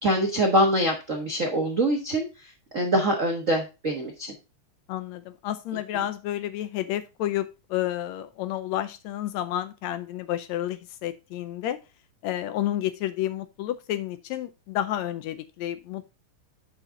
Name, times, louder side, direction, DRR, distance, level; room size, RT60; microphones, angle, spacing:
voice 1, 0.0-4.3 5.9-6.0, right 1 dB, 60° right, 1 dB, 0.8 m, -24 dB
voice 2, 4.9-11.8 12.2-16.1, left 12 dB, 80° left, 12 dB, 1.8 m, -30 dB
8.2 x 5.8 x 3.7 m, 0.28 s
omnidirectional pair, 3.4 m